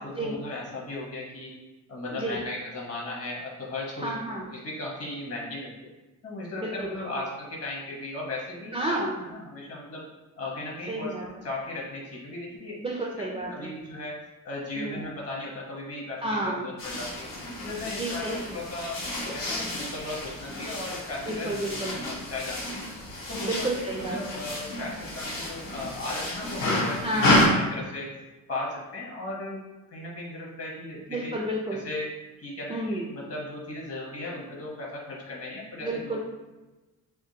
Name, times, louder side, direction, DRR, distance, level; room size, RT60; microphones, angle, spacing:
voice 1, 0.0-1.5 1.9-4.1 4.5-5.9 6.2-8.9 9.2-10.0 10.4-12.8 13.3-14.2 14.4-17.3 17.6-19.0 19.3-22.8 23.3-28.2 28.5-29.6 29.9-31.4 31.7-32.1 32.4-36.2, left 2 dB, 40° left, -3 dB, 1.1 m, -36 dB
voice 2, 4.0-4.4 6.6-6.9 8.7-9.2 10.9-11.2 12.8-13.7 14.8-15.0 16.2-16.7 17.9-18.4 21.3-21.9 23.4-24.2 27.0-27.3 31.1-31.8 32.7-33.1 35.8-36.2, right 1 dB, 15° right, -2 dB, 0.4 m, -30 dB
sound 1, 16.8-27.5, left 1 dB, 70° left, 1.1 m, -30 dB
3.6 x 2.8 x 2.8 m, 1.1 s
cardioid pair, 110°, 34 cm